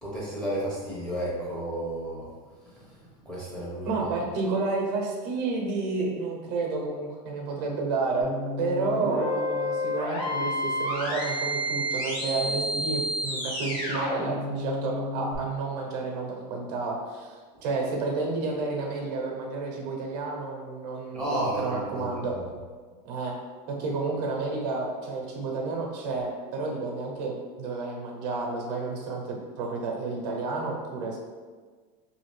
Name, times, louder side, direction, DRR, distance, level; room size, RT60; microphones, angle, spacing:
voice 1, 0.0-2.2 3.2-3.9 21.1-22.1, right 1 dB, 5° left, -8 dB, 0.8 m, -32 dB
voice 2, 3.8-8.3 8.6-22.4 23.0-23.4 23.7-31.2, right 3 dB, 75° right, 0 dB, 0.8 m, -30 dB
sound 1, 8.2-15.4, left 1 dB, 25° left, 1.0 m, -30 dB
2.7 x 2.4 x 3.1 m, 1.5 s
supercardioid pair, 155°, 21 cm